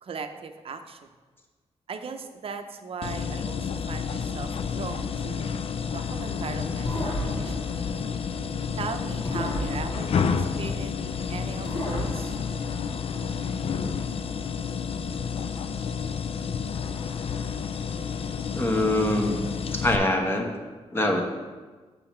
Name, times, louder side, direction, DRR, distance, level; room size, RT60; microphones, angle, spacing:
voice 1, 0.0-1.0 1.9-5.5 5.9-7.8 8.8-12.4, right 5 dB, 55° right, 7 dB, 0.6 m, -38 dB
sound 1, 3.0-20.0, left 6 dB, 55° left, 0.4 m, -30 dB
sound 2, 6.9-8.7 9.3-11.1 11.6-13.4, equal, 40° left, 1.1 m, -35 dB
voice 2, 18.5-19.4 19.7-20.5 20.9-21.2, left 1 dB, 20° left, 2 dB, 1.1 m, -24 dB
7.1 x 5.7 x 4.3 m, 1.3 s
wide cardioid pair, 115°, 11 cm